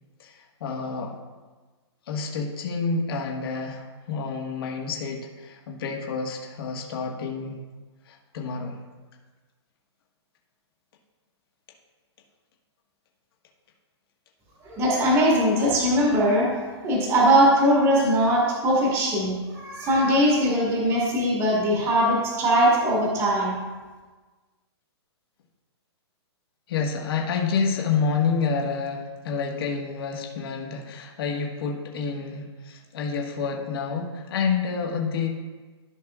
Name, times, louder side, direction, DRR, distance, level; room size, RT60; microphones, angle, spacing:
voice 1, 0.2-1.1 2.1-7.6 8.0-8.8 26.7-35.3, left 5 dB, 55° left, 0 dB, 1.6 m, -28 dB
voice 2, 14.6-23.6, equal, 20° right, -3 dB, 1.8 m, -21 dB
14.0 x 5.7 x 2.4 m, 1.3 s
hypercardioid pair, 155°, 15 cm